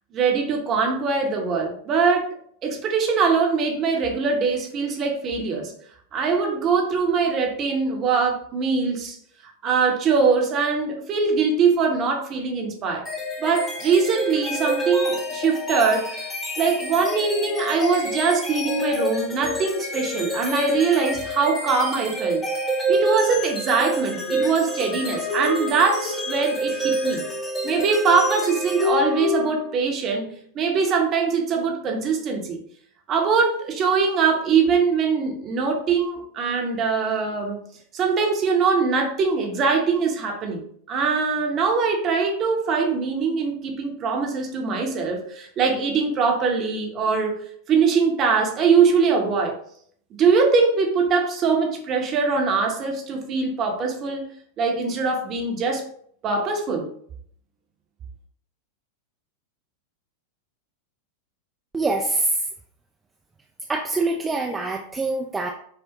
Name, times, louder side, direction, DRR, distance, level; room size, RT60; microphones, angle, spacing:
voice 1, 0.1-5.7 6.1-9.2 9.6-13.0 13.4-16.3 16.6-22.4 22.9-27.2 27.6-32.6 33.1-37.6 37.9-49.6 50.2-54.3 54.6-55.8 56.2-56.9, right 5 dB, 30° right, 1 dB, 0.8 m, -22 dB
sound 1, 13.1-29.7, equal, 15° left, 0.7 m, -28 dB
voice 2, 61.7-62.4 63.7-65.5, right 2 dB, 15° right, 1 dB, 0.3 m, -24 dB
5.0 x 2.1 x 2.9 m, 0.63 s
figure-of-eight pair, 90°, 0 cm